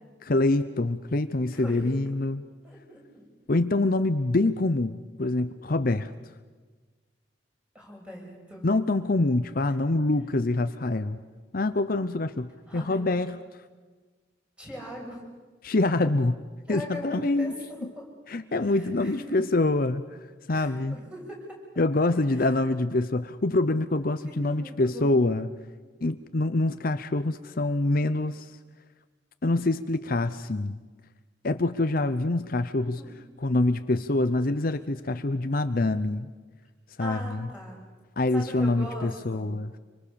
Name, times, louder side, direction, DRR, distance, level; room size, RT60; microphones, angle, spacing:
voice 1, 0.2-2.4 3.5-6.1 8.6-11.2 11.5-13.4 15.6-16.4 16.7-17.5 18.3-20.1 20.5-21.0 21.8-25.5 26.0-28.5 29.4-30.8 31.4-33.0 33.4-36.3 37.0-37.5 38.2-39.7, left 2 dB, 50° left, 11 dB, 0.7 m, -25 dB
voice 2, 1.5-1.9 2.6-3.2 7.7-8.7 12.7-13.0 14.6-15.2 16.7-18.1 18.6-19.4 20.5-21.4 21.7-21.8 22.3-22.8 24.2-25.3 33.0-33.1 37.0-37.8 38.3-39.5, equal, 5° right, -2 dB, 6.8 m, -41 dB
27.0 x 25.0 x 7.0 m, 1.4 s
head